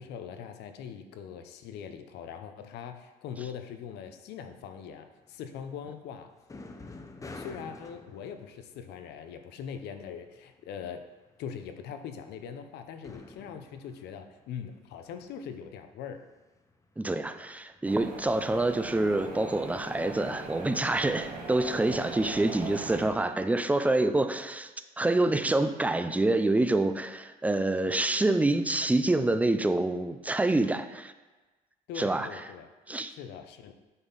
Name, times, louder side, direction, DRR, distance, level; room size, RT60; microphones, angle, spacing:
voice 1, 0.0-6.3 7.3-11.0 11.4-16.2 31.9-32.7 33.1-33.7, left 7 dB, 80° left, 7 dB, 0.8 m, -41 dB
sound 1, 4.6-10.8 11.1-20.1, left 3 dB, 20° left, 0.7 m, -50 dB
voice 2, 17.0-24.7 25.0-31.1 32.0-32.4 32.9-33.1, right 2 dB, 10° right, 10 dB, 0.4 m, -27 dB
sound 2, 17.8-23.1, right 3 dB, 55° right, 2.0 m, -40 dB
8.1 x 5.5 x 4.0 m, 1.2 s
cardioid pair, 110°, 17 cm